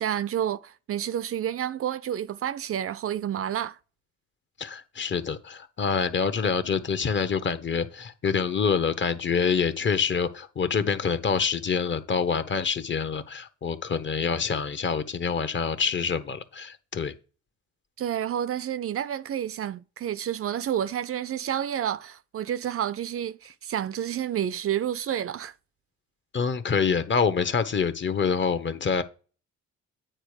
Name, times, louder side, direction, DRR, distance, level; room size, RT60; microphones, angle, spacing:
voice 1, 0.0-3.8 18.0-25.5, right 10 dB, 50° right, 0.5 m, -29 dB
voice 2, 4.6-17.1 26.3-29.0, left 6 dB, 40° left, 1.1 m, -26 dB
9.0 x 4.3 x 4.9 m
cardioid pair, 90°, 30 cm